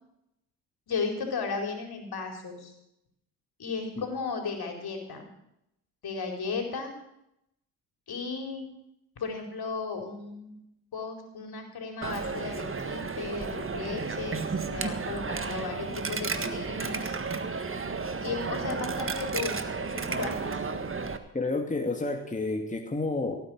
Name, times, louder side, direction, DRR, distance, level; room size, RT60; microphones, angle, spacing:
voice 1, 0.9-2.7 3.6-5.3 6.0-6.9 8.1-8.6 9.2-10.6 10.9-17.2 18.2-21.1, left 4 dB, 55° left, 4 dB, 4.6 m, -35 dB
Coin (dropping), 12.0-21.2, right 4 dB, 30° right, 1.6 m, -33 dB
voice 2, 21.3-23.4, left 3 dB, 15° left, 3 dB, 2.4 m, -30 dB
16.5 x 9.8 x 6.4 m, 0.80 s
hypercardioid pair, 50°, 44 cm